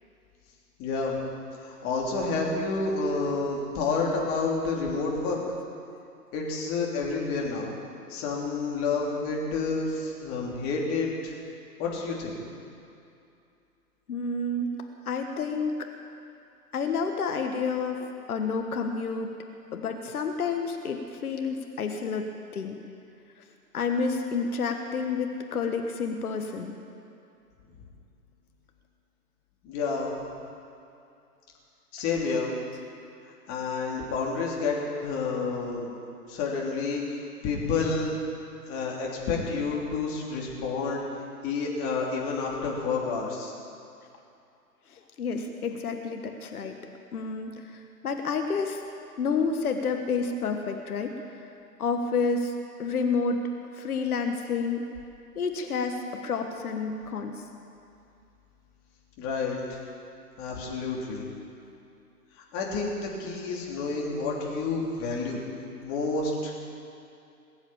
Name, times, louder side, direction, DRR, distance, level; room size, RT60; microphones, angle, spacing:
voice 1, 0.8-1.2 1.6-5.4 6.3-7.7 8.1-11.3 11.8-12.4 29.6-30.2 31.9-32.5 33.5-35.9 36.3-38.1 38.7-41.0 41.4-43.5 59.2-59.8 60.4-61.2 62.5-65.4 65.8-66.5, left 4 dB, 30° left, -2 dB, 3.2 m, -29 dB
voice 2, 14.1-14.7 15.1-15.9 16.7-19.3 19.7-22.8 23.4-23.5 23.7-26.8 44.9-46.8 47.1-48.8 49.2-51.3 51.8-52.5 52.8-53.4 53.7-54.8 55.3-57.4, left 4 dB, 65° left, 5 dB, 1.4 m, -29 dB
20.5 x 8.0 x 8.8 m, 2.6 s
figure-of-eight pair, 125°, 48 cm